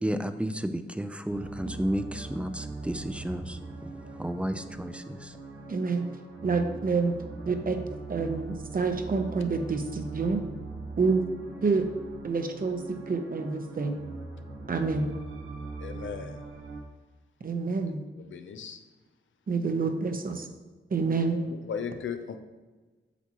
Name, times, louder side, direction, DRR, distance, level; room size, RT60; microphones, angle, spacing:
voice 1, 0.0-5.4, equal, 5° right, 9 dB, 0.4 m, -32 dB
sound 1, 1.3-16.8, right 3 dB, 90° right, 1.0 m, -41 dB
voice 2, 5.7-6.0 6.4-7.1 7.5-7.8 8.1-10.4 11.0-11.2 11.6-11.9 12.2-13.9 14.7-15.1 17.4-18.0 19.5-20.5 20.9-21.4, right 4 dB, 45° right, 6 dB, 0.8 m, -27 dB
voice 3, 15.8-16.6 18.2-18.8 21.3-22.4, left 7 dB, 85° left, 8 dB, 0.6 m, -37 dB
8.2 x 5.9 x 3.0 m, 1.3 s
cardioid pair, 80°, 20 cm